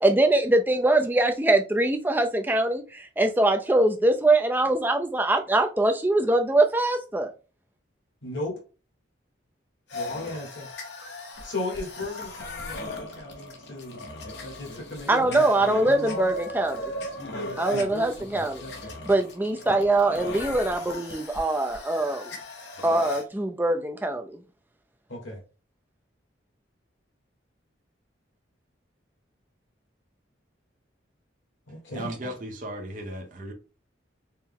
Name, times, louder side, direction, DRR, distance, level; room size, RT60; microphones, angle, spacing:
voice 1, 0.0-7.3 15.1-16.9 17.6-18.7 19.1-22.3 22.8-24.4, right 2 dB, 10° right, 0.3 m, -23 dB
voice 2, 8.2-8.5 9.9-10.7 11.4-14.0 14.5-15.3 15.8-16.3 18.2-18.5 25.1-25.4 31.7-32.1, left 2 dB, 80° left, 1.5 m, -36 dB
sound 1, 9.9-23.2, left 1 dB, 60° left, 0.9 m, -37 dB
voice 3, 31.9-33.5, right 1 dB, 40° right, 0.7 m, -35 dB
4.4 x 2.0 x 3.6 m
head